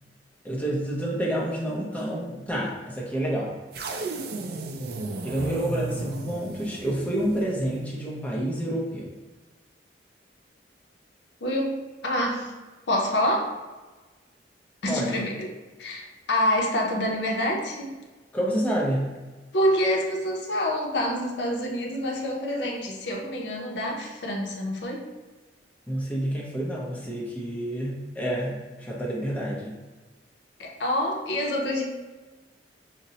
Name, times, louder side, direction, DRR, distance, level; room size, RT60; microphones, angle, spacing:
voice 1, 0.4-3.5 5.2-9.2 14.9-15.2 18.3-19.1 25.9-29.8, right 1 dB, 10° left, -4 dB, 0.6 m, -29 dB
sound 1, 3.7-8.0, right 2 dB, 60° right, 0.3 m, -34 dB
voice 2, 11.4-12.5 12.9-13.5 14.8-15.5 15.8-17.9 19.5-25.1 30.6-31.8, equal, 70° left, 0 dB, 0.6 m, -27 dB
5.0 x 2.0 x 2.7 m, 1.2 s
head